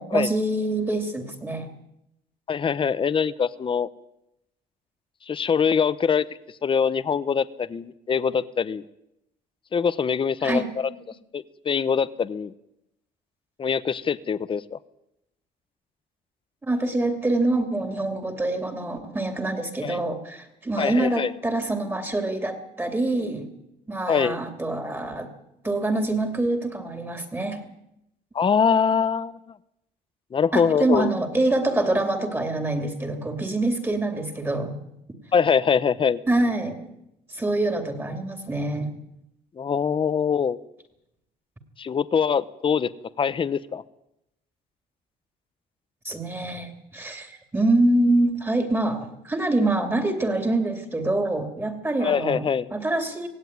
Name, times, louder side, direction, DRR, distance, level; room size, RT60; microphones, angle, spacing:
voice 1, 0.0-1.7 10.4-10.7 16.6-23.5 23.9-25.3 25.6-27.6 30.5-34.7 36.3-36.8 37.3-38.9 46.0-52.4 52.7-53.3, right 2 dB, 15° right, 6 dB, 2.8 m, -25 dB
voice 2, 2.5-3.9 5.3-6.3 6.6-8.8 9.7-10.6 11.3-12.5 13.6-14.8 19.8-20.0 20.8-21.3 24.1-24.4 28.3-29.4 30.3-31.1 35.3-36.2 39.6-40.6 41.8-42.9 43.2-43.8 52.0-52.7, left 6 dB, 30° left, 16 dB, 0.9 m, -23 dB
17.5 x 16.5 x 9.5 m, 0.85 s
cardioid pair, 110°, 17 cm